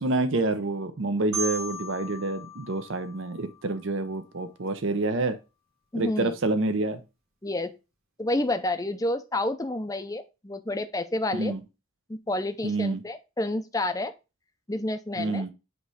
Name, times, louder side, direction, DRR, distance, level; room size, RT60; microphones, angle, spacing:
voice 1, 0.0-5.4 5.9-7.0 11.3-11.6 12.6-13.0 15.2-15.5, right 2 dB, 60° right, 9 dB, 0.7 m, -28 dB
Marimba xylophone, 1.3-4.2, right 1 dB, 90° right, 2.1 m, -37 dB
voice 2, 5.9-6.3 7.4-7.7 8.2-11.5 12.1-14.1 14.7-15.4, left 1 dB, 15° left, 8 dB, 0.5 m, -29 dB
8.0 x 3.2 x 4.8 m, 0.27 s
head